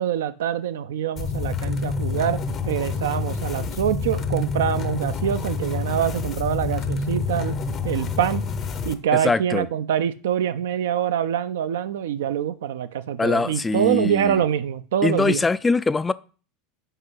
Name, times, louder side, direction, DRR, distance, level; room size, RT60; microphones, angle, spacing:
voice 1, 0.0-2.4 2.6-7.6 7.8-8.4 8.8-15.4, right 9 dB, 70° right, 0.5 m, -25 dB
sound 1, 1.2-8.9, left 4 dB, 40° left, 0.7 m, -27 dB
voice 2, 9.2-9.7 13.2-14.4 15.0-16.1, left 3 dB, 15° left, 0.3 m, -22 dB
5.5 x 4.9 x 5.6 m
figure-of-eight pair, 80°, 0 cm